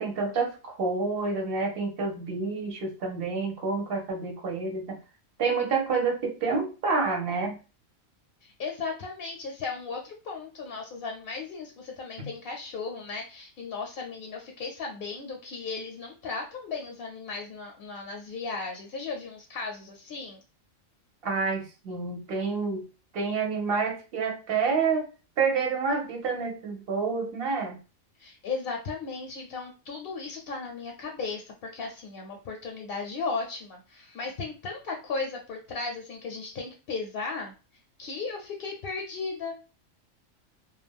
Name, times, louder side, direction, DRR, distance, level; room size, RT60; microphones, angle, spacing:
voice 1, 0.0-5.0 5.4-7.6 12.2-12.3 21.2-22.8 23.1-25.1 25.4-27.8, right 4 dB, 55° right, 2 dB, 0.8 m, -28 dB
voice 2, 8.4-20.4 28.2-37.5 38.0-39.5, left 4 dB, 60° left, 1 dB, 0.6 m, -36 dB
2.3 x 2.1 x 3.4 m, 0.33 s
omnidirectional pair, 1.3 m